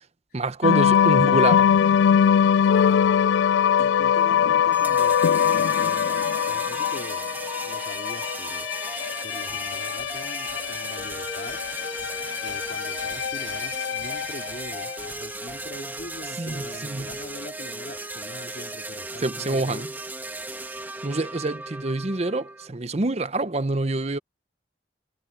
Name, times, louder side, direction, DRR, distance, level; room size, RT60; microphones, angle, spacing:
voice 1, 0.3-1.7 16.4-17.1 19.2-19.9 21.0-24.2, right 2 dB, 35° right, 0.8 m, -26 dB
sound 1, 0.6-15.1, left 8 dB, 85° left, 0.3 m, -22 dB
voice 2, 2.6-3.1 3.6-5.2 5.5-7.4 7.6-8.7 9.2-11.6 12.4-19.9, left 1 dB, 55° left, 2.7 m, -42 dB
sound 2, 4.7-22.7, right 2 dB, 10° right, 1.5 m, -36 dB
sound 3, 9.5-17.5, left 1 dB, 10° left, 5.5 m, -54 dB
head